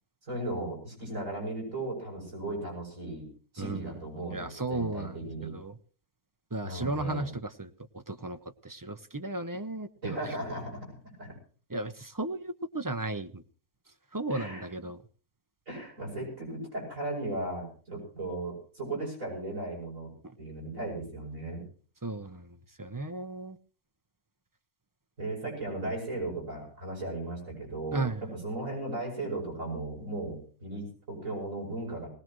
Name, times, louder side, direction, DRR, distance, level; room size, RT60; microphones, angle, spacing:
voice 1, 0.3-3.3 3.5-5.5 6.6-7.3 10.0-10.9 11.2-11.3 14.3-14.7 15.7-20.1 20.4-21.6 25.2-32.1, right 2 dB, 65° right, -2 dB, 8.3 m, -36 dB
voice 2, 3.6-4.0 4.3-5.8 6.5-10.4 11.7-13.4 14.1-15.0 20.2-20.3 22.0-23.6 27.9-28.3, right 2 dB, 20° right, 8 dB, 0.6 m, -35 dB
20.0 x 19.0 x 3.1 m, 0.41 s
omnidirectional pair, 1.5 m